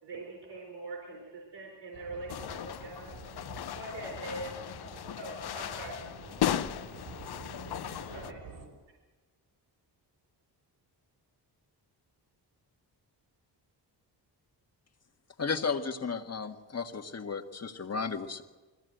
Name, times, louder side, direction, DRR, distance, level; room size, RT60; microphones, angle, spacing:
voice 1, 0.0-3.1 3.8-4.5 5.2-6.0 8.1-8.4, right 2 dB, 80° right, 0 dB, 4.6 m, -42 dB
sound 1, 1.9-8.7, right 3 dB, 55° right, 4.8 m, -48 dB
sound 2, 2.3-8.3, left 11 dB, 65° left, 0.8 m, -36 dB
voice 2, 3.7-4.1 4.8-5.6, left 1 dB, 15° left, -3 dB, 6.4 m, -59 dB
voice 3, 15.4-18.4, left 5 dB, 35° left, 6 dB, 1.6 m, -34 dB
21.5 x 16.0 x 7.9 m, 1.2 s
cardioid pair, 75°, 42 cm